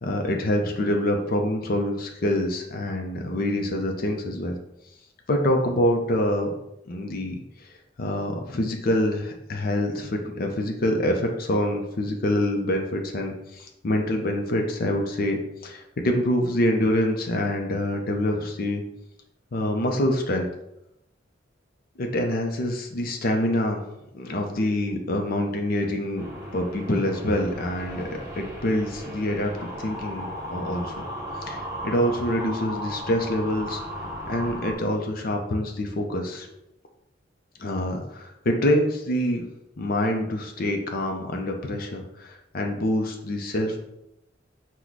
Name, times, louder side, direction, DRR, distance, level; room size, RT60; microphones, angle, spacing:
voice 1, 0.0-4.6 5.3-6.5 6.9-7.4 8.0-18.8 19.5-20.5 22.0-23.8 24.1-26.3 26.5-28.1 28.4-31.1 31.5-33.8 34.3-36.5 37.6-39.4 39.8-43.8, left 1 dB, 50° left, 3 dB, 0.6 m, -26 dB
sound 1, 26.2-34.7, equal, 15° right, 1.0 m, -36 dB
4.5 x 2.2 x 4.0 m, 0.82 s
head